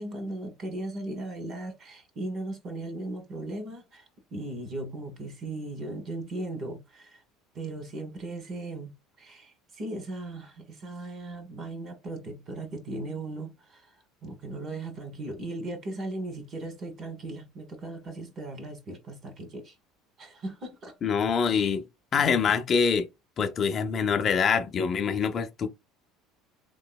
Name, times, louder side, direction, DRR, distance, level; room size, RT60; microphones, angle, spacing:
voice 1, 0.0-4.0 4.3-7.2 7.5-8.9 9.2-13.9 14.2-19.7 20.2-21.0, right 2 dB, 40° right, 1.3 m, -37 dB
voice 2, 21.0-21.8 22.1-23.1 23.4-25.7, left 6 dB, 35° left, 0.4 m, -25 dB
3.7 x 2.9 x 2.2 m
cardioid pair, 125°, 0 cm